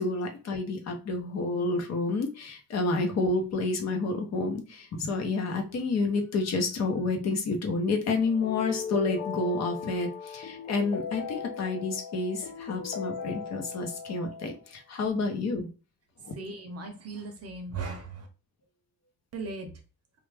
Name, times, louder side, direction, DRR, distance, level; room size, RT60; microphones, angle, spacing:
voice 1, 0.0-15.7 16.2-16.3, left 3 dB, 50° left, 4 dB, 0.9 m, -29 dB
sound 1, 8.2-14.7, left 6 dB, 30° left, 0.5 m, -38 dB
voice 2, 16.3-18.3 19.3-19.7, right 3 dB, 45° right, 6 dB, 0.6 m, -37 dB
3.2 x 2.4 x 3.3 m, 0.33 s
cardioid pair, 155°, 35 cm